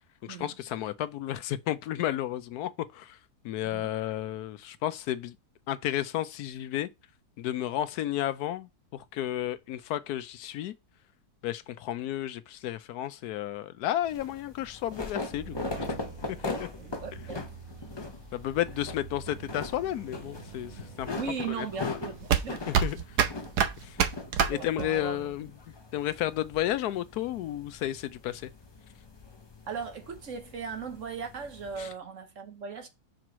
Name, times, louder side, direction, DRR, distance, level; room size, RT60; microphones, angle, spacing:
voice 1, 0.3-3.2 3.4-5.4 5.7-6.9 7.4-10.7 11.4-16.0 16.4-16.7 18.3-21.1 21.6-21.9 22.7-23.2 23.8-24.0 24.5-25.5 25.9-28.5 31.8-31.9, left 12 dB, 75° left, 1.1 m, -32 dB
down stairs, 14.0-31.9, left 3 dB, 30° left, 0.5 m, -41 dB
sound 1, 15.3-23.3, right 5 dB, 25° right, 2.4 m, -47 dB
voice 2, 16.8-17.5 21.1-22.7 24.5-25.5 29.7-32.9, right 6 dB, 55° right, 1.2 m, -38 dB
sound 2, 19.2-25.2, right 8 dB, 85° right, 1.4 m, -28 dB
5.0 x 4.6 x 6.0 m
omnidirectional pair, 1.7 m